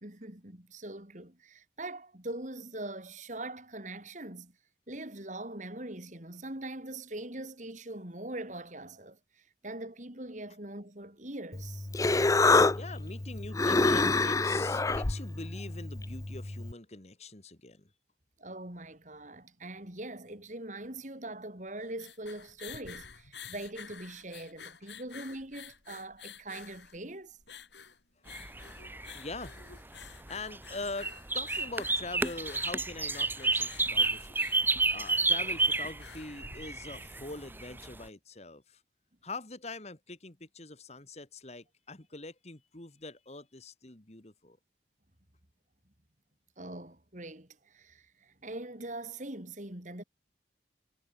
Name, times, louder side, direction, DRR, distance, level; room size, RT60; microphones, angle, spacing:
voice 1, 0.0-4.5 4.9-11.9 18.4-27.4 46.6-50.0, right 1 dB, 45° right, 3.9 m, -42 dB
Human voice, 11.5-16.7, left 3 dB, 20° left, 0.5 m, -27 dB
voice 2, 12.7-17.9 28.7-29.6 30.3-34.5 34.9-38.8 39.2-44.6, left 3 dB, 35° left, 2.0 m, -43 dB
sound 1, 21.7-37.1, left 7 dB, 85° left, 4.6 m, -50 dB
sound 2, 28.3-38.0, right 3 dB, 10° right, 1.1 m, -31 dB
head